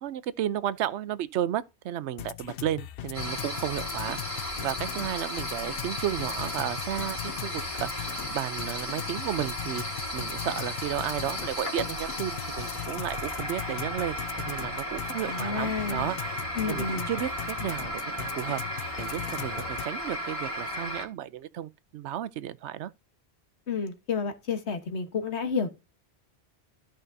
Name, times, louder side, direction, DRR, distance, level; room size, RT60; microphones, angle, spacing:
voice 1, 0.0-22.9, right 11 dB, 85° right, 0.9 m, -33 dB
sound 1, 2.2-19.9, left 12 dB, 65° left, 0.7 m, -39 dB
sound 2, 3.1-21.1, equal, 30° left, 2.0 m, -35 dB
voice 2, 15.2-16.1 16.5-17.1 23.7-25.7, left 5 dB, 85° left, 1.5 m, -30 dB
13.5 x 5.1 x 2.6 m
omnidirectional pair, 1.1 m